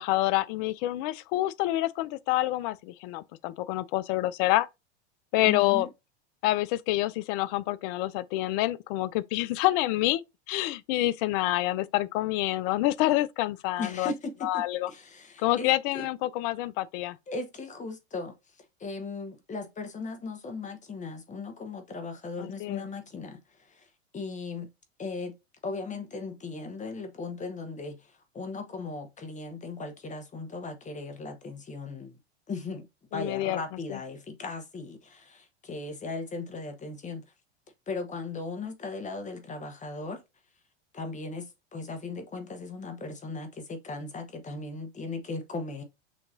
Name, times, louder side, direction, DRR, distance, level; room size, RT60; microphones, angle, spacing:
voice 1, 0.0-4.7 5.3-5.9 6.4-10.2 10.5-14.1 14.4-14.9 15.4-17.2 22.4-22.8 33.1-33.6 33.9-34.0, left 16 dB, 50° left, 0.5 m, -27 dB
voice 2, 5.4-5.9 13.8-16.1 17.3-18.3 18.8-23.9 24.1-24.7 25.0-25.3 25.6-32.2 32.5-32.9 33.1-37.2 37.9-40.2 40.9-45.8, left 3 dB, 20° left, 1.2 m, -37 dB
6.3 x 2.9 x 2.7 m
hypercardioid pair, 100°, 34 cm